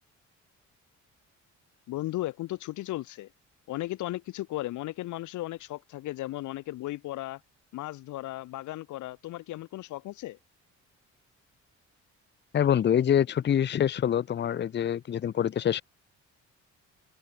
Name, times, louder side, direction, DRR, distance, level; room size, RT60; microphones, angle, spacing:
voice 1, 1.9-3.3 3.7-7.4 7.7-10.4, left 16 dB, 75° left, 0.7 m, -35 dB
voice 2, 12.5-15.8, left 9 dB, 35° left, 0.6 m, -25 dB
open air
cardioid pair, 90°, 30 cm